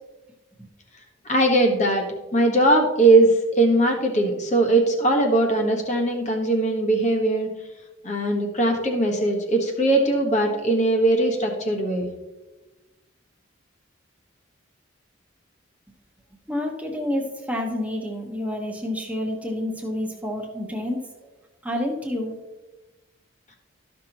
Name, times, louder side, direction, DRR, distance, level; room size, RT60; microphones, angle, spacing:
voice 1, 1.3-2.0 2.3-7.5 8.0-12.1, right 2 dB, 35° left, 2 dB, 1.3 m, -20 dB
voice 2, 16.5-21.0 21.6-22.4, left 1 dB, 5° right, 0 dB, 1.1 m, -28 dB
13.5 x 6.0 x 2.9 m, 1.1 s
head